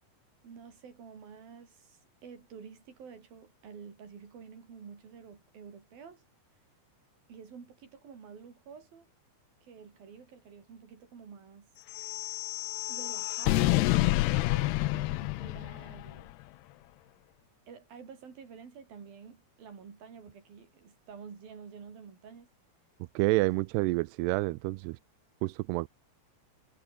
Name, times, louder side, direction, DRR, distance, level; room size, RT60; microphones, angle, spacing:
voice 1, 0.4-6.2 7.3-9.1 9.6-11.7 12.9-16.3 17.7-22.5, right 6 dB, 60° right, 6.2 m, -49 dB
sound 1, 11.9-16.2, left 20 dB, 80° left, 2.6 m, -29 dB
voice 2, 23.2-25.0 25.4-25.9, right 22 dB, 85° right, 2.7 m, -28 dB
omnidirectional pair, 4.8 m